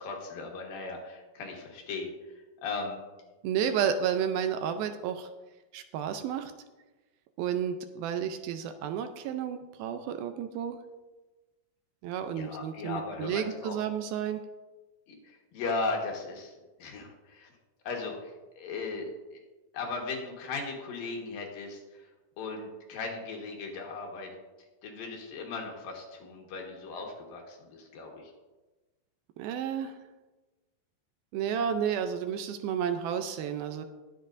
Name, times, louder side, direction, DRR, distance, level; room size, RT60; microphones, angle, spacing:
voice 1, 0.0-3.0 3.6-3.7 12.3-13.8 15.1-16.5 16.8-17.5 17.8-19.1 19.3-19.4 19.7-22.1 22.4-24.3 24.8-28.3, left 3 dB, 70° left, 1 dB, 3.1 m, -37 dB
voice 2, 3.4-5.3 5.7-6.5 7.4-10.8 12.0-14.4 29.4-30.0 31.3-33.9, right 8 dB, 80° right, 8 dB, 2.3 m, -31 dB
21.0 x 7.6 x 2.6 m, 1.2 s
omnidirectional pair, 4.5 m